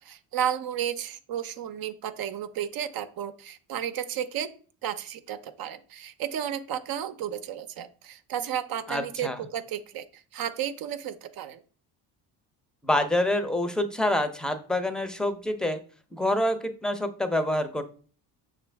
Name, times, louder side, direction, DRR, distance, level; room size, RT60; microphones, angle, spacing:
voice 1, 0.0-4.5 4.8-11.6, right 10 dB, 55° right, 10 dB, 0.6 m, -33 dB
voice 2, 8.9-9.4 12.8-15.8 16.1-17.8, left 1 dB, ahead, 8 dB, 0.6 m, -26 dB
6.0 x 2.5 x 3.3 m, 0.40 s
supercardioid pair, 80°, 43 cm